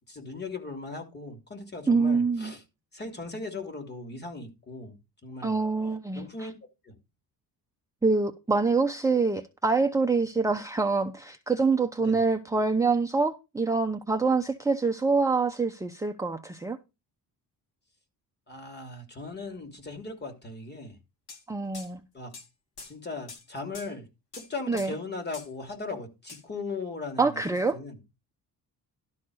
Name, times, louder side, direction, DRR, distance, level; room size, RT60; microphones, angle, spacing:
voice 1, 0.1-2.6 2.9-4.9 5.2-5.6 6.1-6.5 6.8-6.9 12.0-12.2 18.5-21.0 22.1-22.3 22.8-24.1 24.3-27.4 27.7-28.0, left 3 dB, 25° left, 3.0 m, -38 dB
voice 2, 1.9-2.5 5.4-6.5 8.0-16.8 21.5-22.0 24.7-24.9 27.2-27.8, right 4 dB, 10° right, 0.7 m, -25 dB
sound 1, 21.3-21.4 21.7-21.9 22.3-22.5 22.8-22.9 23.3-23.4 23.7-23.9 24.3-24.5 24.8-24.9 25.3-25.5 26.3-26.4, left 4 dB, 80° left, 3.1 m, -44 dB
12.0 x 4.2 x 6.4 m
cardioid pair, 130°, 37 cm